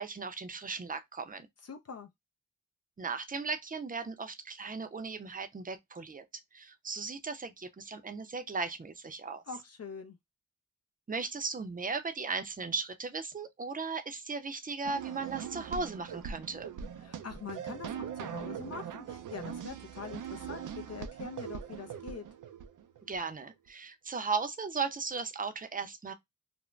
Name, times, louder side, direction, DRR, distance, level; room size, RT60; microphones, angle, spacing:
voice 1, 0.0-1.5 3.0-6.2 6.5-9.4 11.1-16.7 23.0-26.1, right 4 dB, 25° right, 0.5 m, -37 dB
voice 2, 1.6-2.1 9.5-10.2 17.0-22.2, left 5 dB, 55° left, 0.5 m, -44 dB
sound 1, 14.8-23.2, right 8 dB, 80° right, 0.5 m, -41 dB
2.5 x 2.1 x 3.0 m
cardioid pair, 65°, 31 cm